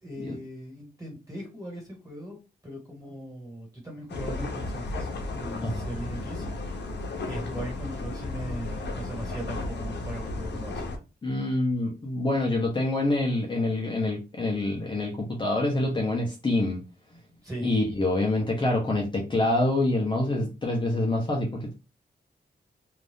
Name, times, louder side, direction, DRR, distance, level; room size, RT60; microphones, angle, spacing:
voice 1, 0.0-2.4 2.6-6.8 7.2-10.8 17.4-17.7, right 1 dB, 20° right, -1 dB, 1.6 m, -39 dB
sound 1, 4.1-11.0, left 2 dB, 85° left, 0.7 m, -34 dB
voice 2, 11.2-16.8 17.6-21.7, left 2 dB, 25° left, -1 dB, 0.6 m, -26 dB
2.6 x 2.4 x 3.4 m, 0.29 s
wide cardioid pair, 175°, 18 cm